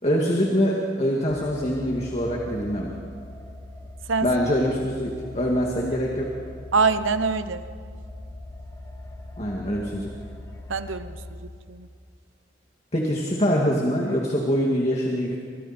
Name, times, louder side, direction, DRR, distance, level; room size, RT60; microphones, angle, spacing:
voice 1, 0.0-2.9 4.2-6.3 9.4-10.1 12.9-15.4, equal, 35° left, -2 dB, 2.3 m, -24 dB
sound 1, 1.3-11.3, left 2 dB, 15° left, 2.2 m, -41 dB
voice 2, 6.7-7.7 10.7-11.9, right 4 dB, 85° right, 11 dB, 1.0 m, -25 dB
29.5 x 27.0 x 4.5 m, 2.2 s
head